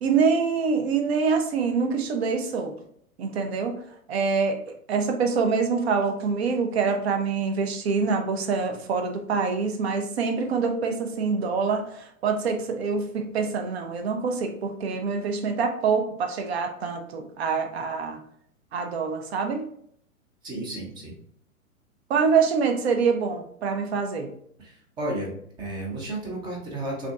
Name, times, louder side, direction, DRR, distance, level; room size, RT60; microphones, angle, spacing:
voice 1, 0.0-2.7 3.2-3.8 4.1-4.6 4.9-18.2 18.7-19.7 22.1-24.3, right 5 dB, 45° right, 5 dB, 0.7 m, -25 dB
voice 2, 20.4-21.1 24.6-25.3 25.6-27.1, right 1 dB, 10° right, 0 dB, 0.5 m, -32 dB
5.8 x 2.7 x 2.3 m, 0.66 s
figure-of-eight pair, 105°, 43 cm